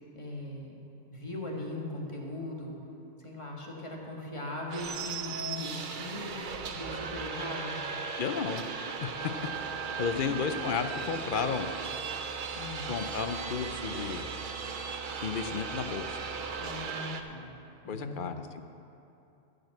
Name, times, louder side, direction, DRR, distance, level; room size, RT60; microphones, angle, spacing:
voice 1, 0.1-0.8 1.1-2.8 3.2-7.8 10.1-10.3 12.5-12.9 16.6-17.5 17.8-18.3, left 2 dB, 30° left, -2 dB, 1.6 m, -39 dB
sound 1, 4.7-17.2, right 5 dB, 55° right, 0.8 m, -37 dB
voice 2, 8.2-8.6 9.0-9.1 10.0-11.7 12.9-14.3 15.2-16.2 17.9-18.6, left 6 dB, 60° left, 8 dB, 0.7 m, -33 dB
15.0 x 5.3 x 7.6 m, 2.8 s
omnidirectional pair, 1.1 m